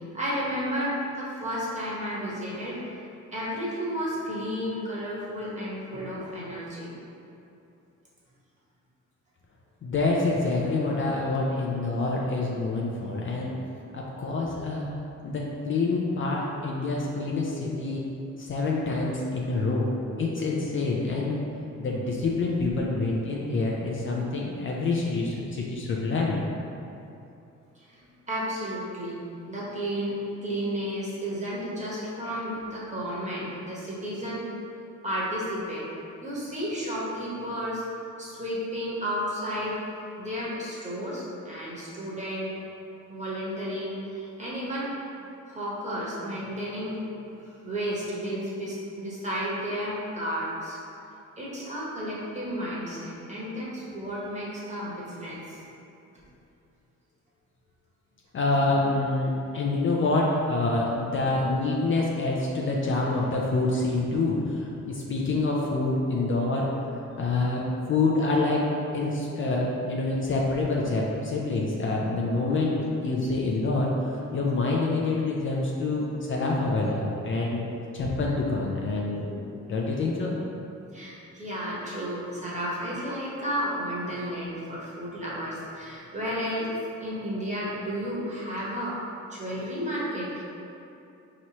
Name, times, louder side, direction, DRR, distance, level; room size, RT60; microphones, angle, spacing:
voice 1, 0.1-3.0 3.3-7.0 27.7-28.0 28.3-29.2 29.5-34.4 35.0-35.8 36.2-37.8 38.2-39.8 40.2-42.5 43.1-44.9 45.5-47.0 47.6-50.8 51.4-55.6 79.3-79.4 80.9-86.7 87.0-89.0 89.3-90.4, equal, 25° right, -7 dB, 1.2 m, -32 dB
voice 2, 9.8-13.5 13.9-14.9 15.2-18.0 18.4-21.4 21.8-26.4 58.3-66.7 67.2-68.6 68.9-72.7 73.0-77.6 77.9-79.2 79.7-80.3, left 3 dB, 40° left, -3 dB, 0.5 m, -26 dB
4.2 x 3.0 x 2.9 m, 2.8 s
cardioid pair, 90°, 30 cm